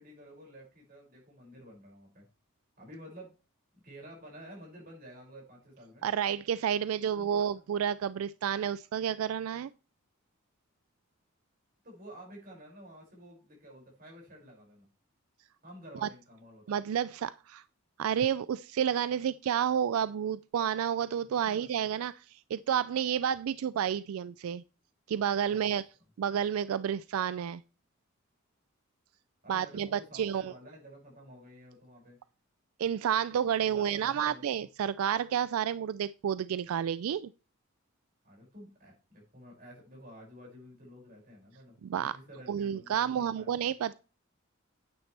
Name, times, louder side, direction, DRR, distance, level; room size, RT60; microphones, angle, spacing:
voice 1, 0.0-2.2 2.8-3.3 3.7-6.1 6.9-7.7 11.8-14.9 15.6-16.7 21.2-22.0 25.5-25.8 29.4-32.2 33.6-34.7 38.2-43.7, equal, 45° right, 5.8 m, -51 dB
voice 2, 6.0-9.7 16.0-16.1 16.7-17.6 18.0-24.6 25.1-25.8 26.2-27.6 29.5-30.5 32.8-37.3 41.8-42.2 42.5-43.9, right 8 dB, 85° right, 0.3 m, -30 dB
9.5 x 8.9 x 3.3 m
head